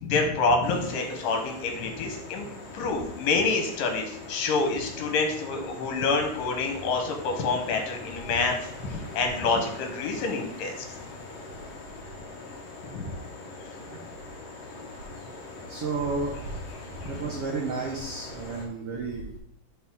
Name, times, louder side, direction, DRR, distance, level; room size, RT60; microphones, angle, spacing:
voice 1, 0.0-2.5 2.7-8.5 8.8-10.8 12.9-13.0, left 3 dB, 80° left, 4 dB, 2.9 m, -27 dB
sound 1, 0.6-18.7, left 3 dB, 55° left, 2.2 m, -42 dB
voice 2, 15.7-16.7 17.0-19.4, right 3 dB, 65° right, -1 dB, 1.5 m, -32 dB
10.0 x 4.1 x 3.8 m, 0.75 s
omnidirectional pair, 3.9 m